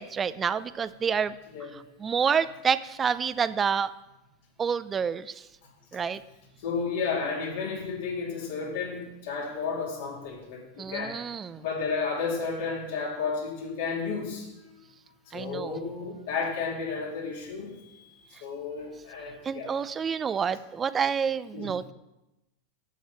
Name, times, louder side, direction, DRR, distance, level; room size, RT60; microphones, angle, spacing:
voice 1, 0.0-1.3 1.7-3.9 4.6-5.5 5.9-6.2 10.8-11.6 15.3-15.8 19.4-21.9, right 6 dB, 25° right, 15 dB, 0.5 m, -28 dB
voice 2, 6.6-11.2 11.6-14.8 15.3-19.7 21.5-21.7, left 5 dB, 65° left, -1 dB, 2.9 m, -32 dB
7.5 x 7.3 x 5.6 m, 0.96 s
hypercardioid pair, 100°, 0 cm